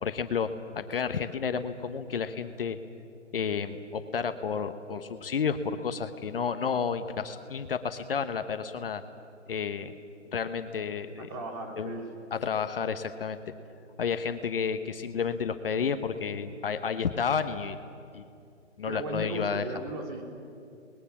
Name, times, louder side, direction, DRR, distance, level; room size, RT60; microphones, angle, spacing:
voice 1, 0.0-2.8 3.3-9.0 9.5-9.9 10.3-11.3 11.8-12.0 12.3-13.5 14.0-17.8 18.1-18.3 18.8-19.6, left 6 dB, 45° left, 9 dB, 1.1 m, -31 dB
voice 2, 11.3-12.1 18.8-20.2, right 2 dB, 30° right, 1 dB, 3.5 m, -36 dB
29.5 x 21.0 x 7.4 m, 2.5 s
hypercardioid pair, 155°, 38 cm